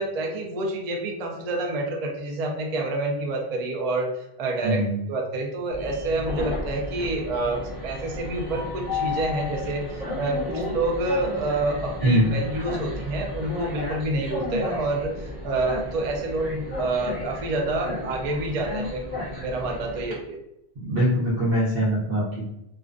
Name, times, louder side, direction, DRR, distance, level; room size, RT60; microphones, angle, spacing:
voice 1, 0.0-4.8 5.1-19.1 19.4-20.4, right 2 dB, 80° right, 1 dB, 0.3 m, -28 dB
voice 2, 4.6-4.9 12.0-12.3 20.8-22.4, right 1 dB, 55° right, -7 dB, 0.9 m, -22 dB
Train, 5.7-20.1, left 2 dB, 20° right, 1.0 m, -33 dB
2.4 x 2.2 x 2.5 m, 0.83 s
omnidirectional pair, 1.3 m